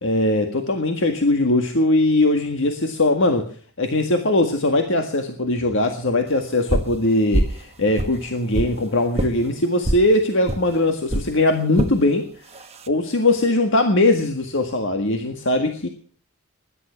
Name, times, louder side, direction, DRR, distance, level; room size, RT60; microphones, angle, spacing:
voice 1, 0.0-3.5 3.8-12.3 12.9-15.9, left 2 dB, 60° left, 6 dB, 1.8 m, -20 dB
sound 1, 6.7-7.0 7.3-7.6 8.0-8.8 9.2-9.3 9.8-10.1 10.5-10.6 11.1-11.3 11.8-12.0 12.5-12.9, right 1 dB, 30° right, 1.2 m, -23 dB
20.5 x 11.0 x 5.8 m, 0.43 s
head